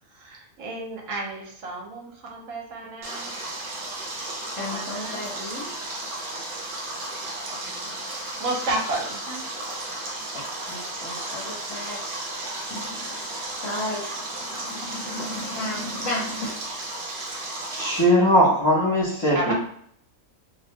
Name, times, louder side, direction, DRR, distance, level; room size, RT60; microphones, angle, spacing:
voice 1, 0.1-3.3 4.6-5.3 7.5-8.0 8.4-9.4 19.3-19.5, right 2 dB, 70° right, 0 dB, 1.0 m, -32 dB
Stream, 3.0-18.0, right 2 dB, 50° right, 0.7 m, -34 dB
voice 2, 4.6-5.7 10.3-12.0 12.7-16.6, left 2 dB, 65° left, -3 dB, 1.1 m, -34 dB
voice 3, 17.7-19.5, equal, 35° left, -8 dB, 0.4 m, -19 dB
2.5 x 2.0 x 2.6 m, 0.65 s
omnidirectional pair, 1.5 m